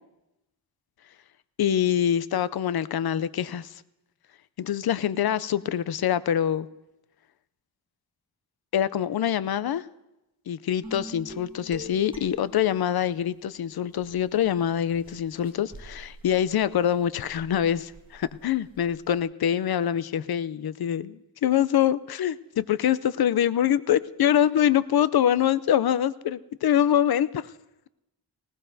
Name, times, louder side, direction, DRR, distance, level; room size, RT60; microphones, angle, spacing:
voice 1, 1.6-3.8 4.6-6.7 8.7-9.9 10.5-27.5, left 10 dB, 65° left, 16 dB, 0.5 m, -25 dB
sound 1, 10.8-13.2 13.9-19.2, right 1 dB, 10° right, 1.5 m, -45 dB
19.5 x 18.5 x 2.6 m, 0.95 s
wide cardioid pair, 125°, 40 cm